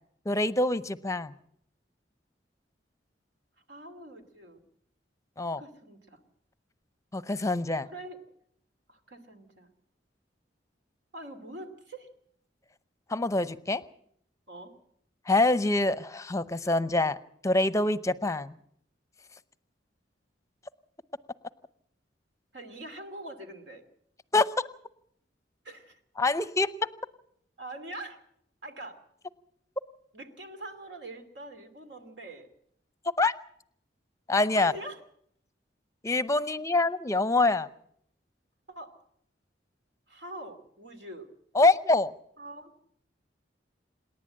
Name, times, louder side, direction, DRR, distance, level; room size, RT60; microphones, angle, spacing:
voice 1, 0.3-1.3 5.4-5.6 7.1-7.9 13.1-13.8 15.3-17.2 17.4-18.5 24.3-24.5 26.2-26.7 33.2-33.3 34.3-34.7 36.0-37.7 41.5-42.1, left 2 dB, 20° left, 15 dB, 0.7 m, -25 dB
voice 2, 3.7-4.6 5.4-6.2 7.8-8.2 8.9-9.7 11.1-12.1 14.5-14.7 22.5-23.8 25.6-26.0 27.6-28.2 28.6-29.0 30.1-32.5 34.5-35.0 38.7-38.9 40.1-41.3 42.4-42.7, right 1 dB, 70° right, 7 dB, 2.7 m, -43 dB
27.5 x 11.0 x 8.8 m, 0.70 s
head